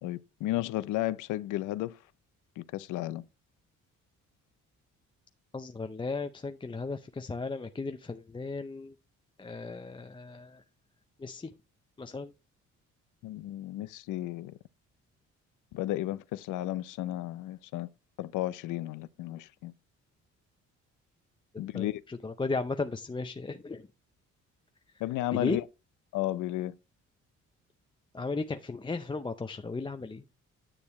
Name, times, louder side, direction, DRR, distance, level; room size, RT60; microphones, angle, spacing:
voice 1, 0.0-2.0 2.6-3.3 13.2-14.5 15.7-17.9 18.2-19.7 21.6-22.0 25.0-25.6 26.1-26.7, left 15 dB, 85° left, 0.6 m, -33 dB
voice 2, 5.5-8.9 9.4-10.6 11.2-11.5 12.0-12.3 21.7-23.8 25.3-25.6 28.1-30.2, left 3 dB, 15° left, 0.5 m, -35 dB
9.8 x 6.7 x 3.1 m
cardioid pair, 90°, 30 cm